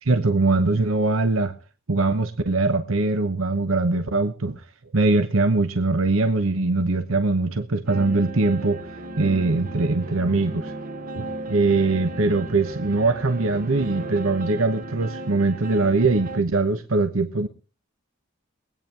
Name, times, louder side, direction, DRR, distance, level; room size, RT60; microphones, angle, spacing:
voice 1, 0.0-1.5 1.9-4.6 4.9-8.8 9.2-10.7 11.1-17.5, right 3 dB, 75° right, 0.9 m, -22 dB
sound 1, 7.9-16.4, right 2 dB, 40° right, 1.1 m, -35 dB
23.0 x 9.1 x 3.4 m
head